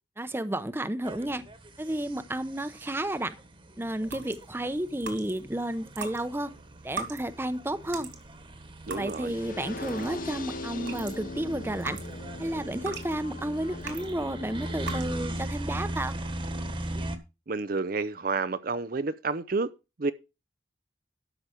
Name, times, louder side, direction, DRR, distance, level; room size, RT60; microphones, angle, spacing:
voice 1, 0.2-1.4 1.8-3.3 3.8-6.5 6.8-8.1 9.0-12.0 12.4-16.2, right 1 dB, 10° right, 0.7 m, -32 dB
sound 1, 1.0-17.2, right 1 dB, 30° right, 1.3 m, -39 dB
sound 2, 4.0-5.5 5.9-10.3 10.7-14.2 14.7-15.2, right 3 dB, 80° right, 3.1 m, -41 dB
voice 2, 8.9-9.3 17.5-19.7 20.0-20.1, right 3 dB, 50° right, 0.6 m, -30 dB
sound 3, 9.3-15.2, left 2 dB, 45° left, 0.7 m, -41 dB
12.5 x 5.9 x 5.0 m
head